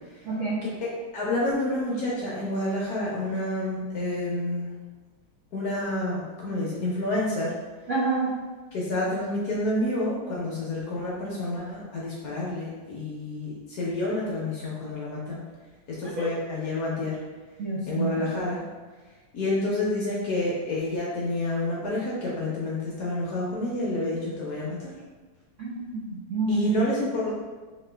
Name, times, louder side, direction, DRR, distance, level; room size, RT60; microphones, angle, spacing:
voice 1, 0.2-0.6 7.9-8.3 16.2-16.4 17.6-18.1 25.6-26.7, right 2 dB, 85° right, -7 dB, 0.6 m, -28 dB
voice 2, 1.1-4.7 5.5-7.5 8.7-15.4 15.9-17.2 17.9-18.6 19.3-24.9 26.5-27.3, left 1 dB, 65° left, -5 dB, 1.0 m, -29 dB
3.6 x 3.0 x 3.3 m, 1.3 s
omnidirectional pair, 2.3 m